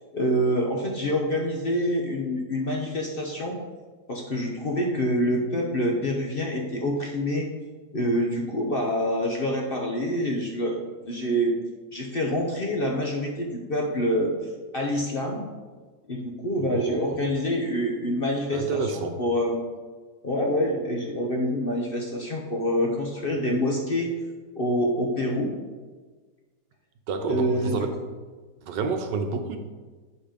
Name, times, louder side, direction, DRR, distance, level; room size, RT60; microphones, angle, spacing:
voice 1, 0.1-3.6 4.1-7.5 7.9-11.6 11.9-14.3 14.7-15.5 16.1-19.6 20.2-24.1 24.5-25.5 27.3-27.9, equal, 45° left, 0 dB, 0.8 m, -26 dB
voice 2, 16.6-17.1 18.5-19.2 27.1-27.9 28.6-29.6, right 4 dB, 80° right, 6 dB, 1.5 m, -29 dB
7.9 x 5.7 x 5.1 m, 1.4 s
omnidirectional pair, 1.9 m